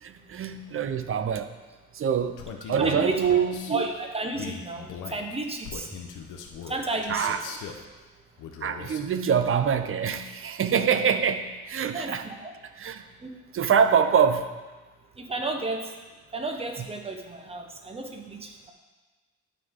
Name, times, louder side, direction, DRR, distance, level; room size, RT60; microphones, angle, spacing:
voice 1, 0.0-1.5 1.9-2.4 2.7-3.8 7.1-7.7 8.6-12.3 12.8-13.0 13.5-14.5, right 7 dB, 45° right, 9 dB, 0.6 m, -25 dB
Male speech man speaking, 2.4-3.8 4.3-7.8 8.4-9.1, left 7 dB, 85° left, 0.8 m, -39 dB
voice 2, 2.8-3.2 3.7-5.9 6.7-7.3 11.9-12.5 13.2-13.3 15.2-15.9 16.3-18.7, right 2 dB, 20° right, 3 dB, 1.0 m, -32 dB
12.0 x 4.1 x 3.7 m, 1.3 s
cardioid pair, 90°, 30 cm